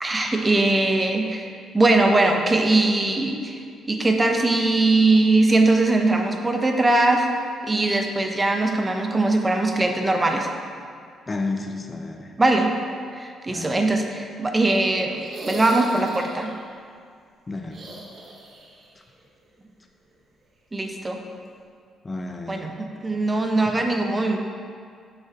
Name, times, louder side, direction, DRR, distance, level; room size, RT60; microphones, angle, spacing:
voice 1, 0.0-1.5 1.7-3.6 3.9-7.3 7.7-10.5 12.4-12.7 13.2-16.5 20.7-21.2 22.5-24.4, right 2 dB, 20° right, 3 dB, 0.6 m, -21 dB
voice 2, 11.3-12.3 13.5-13.8 17.5-17.8 22.0-22.6, left 3 dB, 25° left, 4 dB, 0.5 m, -31 dB
sound 1, 15.2-16.6 17.7-18.9 19.1-19.2 20.9-21.0, right 1 dB, 50° right, 1.1 m, -37 dB
7.3 x 6.3 x 2.9 m, 2.2 s
cardioid pair, 90°, 0 cm